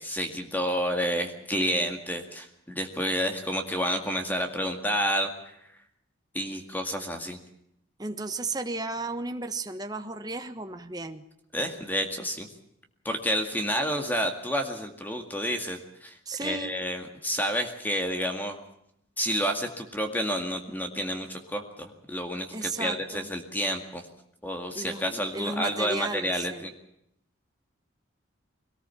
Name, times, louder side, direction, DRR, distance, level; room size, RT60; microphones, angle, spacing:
voice 1, 0.0-5.3 6.3-7.4 11.5-12.5 13.0-18.6 19.2-24.0 24.4-26.7, equal, 10° left, 5 dB, 2.0 m, -30 dB
voice 2, 8.0-11.2 16.3-16.7 22.5-23.3 24.7-26.7, right 2 dB, 20° right, 7 dB, 1.3 m, -34 dB
22.0 x 19.0 x 7.0 m, 0.76 s
head